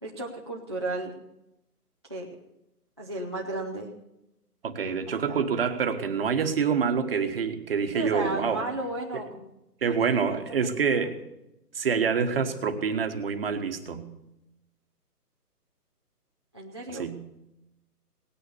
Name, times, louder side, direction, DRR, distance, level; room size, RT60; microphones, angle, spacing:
voice 1, 0.0-1.1 2.1-2.3 3.0-3.9 4.8-5.4 7.9-9.5 9.9-10.0 10.3-10.4 16.5-17.0, right 2 dB, 20° right, -1 dB, 0.6 m, -34 dB
voice 2, 4.6-8.6 9.1-9.2 9.8-11.2 11.7-14.1 16.9-17.2, right 6 dB, 35° right, 6 dB, 1.3 m, -27 dB
18.0 x 9.9 x 6.8 m, 0.90 s
hypercardioid pair, 165°, 48 cm